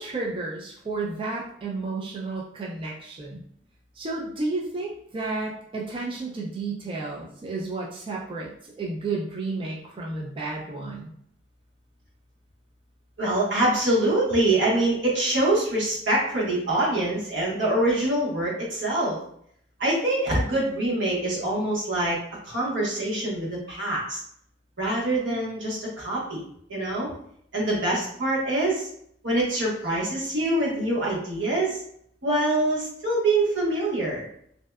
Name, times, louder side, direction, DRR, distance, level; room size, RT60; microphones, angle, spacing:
voice 1, 0.0-3.4 4.0-11.1, right 3 dB, 30° right, -3 dB, 0.3 m, -32 dB
voice 2, 13.2-19.2 19.8-22.2 22.4-24.2 24.8-26.4 26.7-27.1 27.5-28.9 29.2-31.8 32.2-34.2, right 1 dB, 85° right, -5 dB, 1.0 m, -24 dB
2.6 x 2.1 x 2.2 m, 0.67 s
head